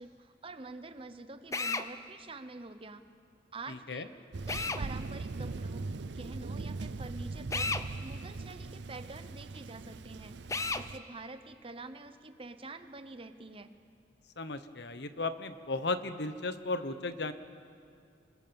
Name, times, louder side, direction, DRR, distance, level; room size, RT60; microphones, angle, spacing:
voice 1, 0.0-3.0 3.5-4.1 4.5-10.4 10.7-13.7, right 3 dB, 30° right, 10 dB, 0.9 m, -47 dB
Drill, 1.5-1.9 4.5-4.8 7.5-7.9 10.5-10.9, left 3 dB, 15° left, 0.6 m, -32 dB
voice 2, 3.7-4.1 14.4-17.3, left 3 dB, 60° left, 11 dB, 1.1 m, -35 dB
Thunder, 4.3-11.0, right 3 dB, 65° right, 0.6 m, -40 dB
28.0 x 21.0 x 7.1 m, 2.3 s
head